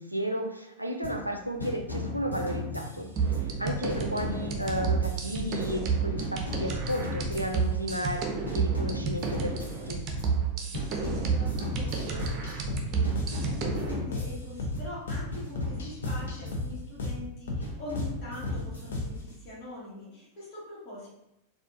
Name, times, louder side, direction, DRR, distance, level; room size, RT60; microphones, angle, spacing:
voice 1, 0.0-3.1 3.6-10.0, equal, 90° right, 3 dB, 0.4 m, -33 dB
sound 1, 1.0-1.3 1.6-3.5 3.9-5.9 6.2-8.1 8.4-10.5 10.7-12.7 13.0-15.0 15.3-17.2 17.6-19.3, left 2 dB, 80° left, 0.8 m, -38 dB
sound 2, 3.2-13.9, right 6 dB, 35° right, 0.5 m, -31 dB
voice 2, 3.6-4.0 10.9-21.1, left 1 dB, 35° left, -9 dB, 1.5 m, -43 dB
sound 3, 11.7-19.3, left 2 dB, 60° left, 0.6 m, -35 dB
4.2 x 2.3 x 2.6 m, 0.86 s
figure-of-eight pair, 90°, 0 cm